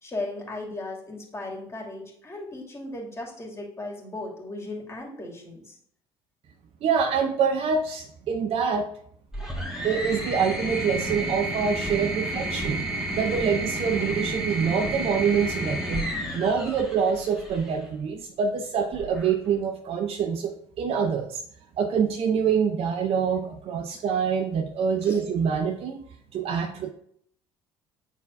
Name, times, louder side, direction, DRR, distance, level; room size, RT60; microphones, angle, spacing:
voice 1, 0.0-5.8 25.0-25.2, left 2 dB, 20° left, -1 dB, 2.5 m, -36 dB
voice 2, 6.8-8.9 9.8-12.9 13.1-16.0 16.3-21.4 21.8-26.0 26.3-26.9, right 6 dB, 50° right, 4 dB, 0.7 m, -25 dB
sound 1, 9.3-17.7 18.9-19.6, right 1 dB, 5° right, 1.8 m, -31 dB
9.1 x 4.1 x 2.6 m, 0.66 s
hypercardioid pair, 65°, 13 cm